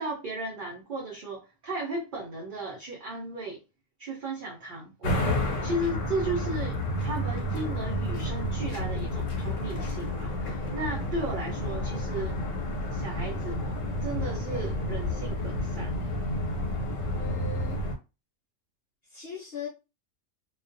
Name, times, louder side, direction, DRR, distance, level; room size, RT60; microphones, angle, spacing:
voice 1, 0.0-3.6 4.0-12.4 12.9-13.7 14.0-15.9, right 2 dB, 55° right, 0.6 m, -35 dB
sound 1, 5.0-17.9, left 1 dB, 80° left, 1.1 m, -30 dB
voice 2, 17.1-17.8 19.1-19.7, left 7 dB, 55° left, 0.9 m, -39 dB
2.3 x 2.2 x 2.5 m
omnidirectional pair, 1.3 m